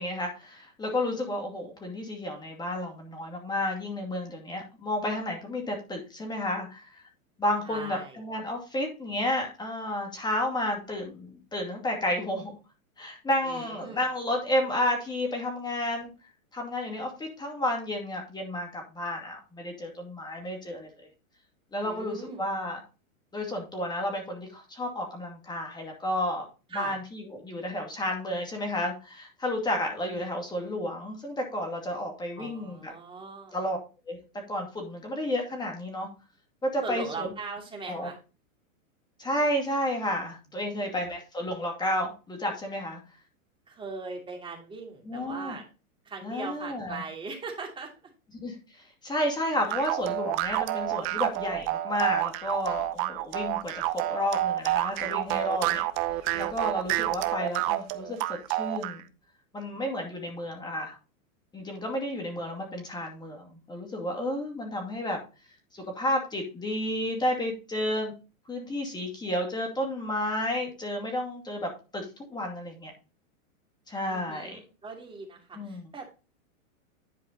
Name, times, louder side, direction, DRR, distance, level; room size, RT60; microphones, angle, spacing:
voice 1, 0.0-7.0 7.4-12.5 13.0-16.1 16.5-21.1 21.7-22.8 23.3-26.4 26.7-32.9 33.5-33.8 34.1-34.2 34.5-36.1 36.6-37.3 37.9-38.1 39.2-43.0 45.0-45.6 46.2-47.0 48.3-55.8 56.3-59.0 59.5-61.0 61.5-65.2 65.7-68.1 68.5-72.9 73.9-74.6 75.5-75.9, left 1 dB, 10° left, 2 dB, 2.4 m, -31 dB
voice 2, 7.6-8.2 13.4-14.0 21.8-22.4 26.7-26.9 32.4-33.6 36.8-38.2 40.8-41.0 43.7-45.6 46.0-47.9 62.4-62.5 74.1-76.1, right 4 dB, 10° right, 0 dB, 2.7 m, -40 dB
sound 1, 49.7-59.0, right 15 dB, 30° right, 0.6 m, -29 dB
10.5 x 4.8 x 4.0 m, 0.31 s
hypercardioid pair, 135°, 42 cm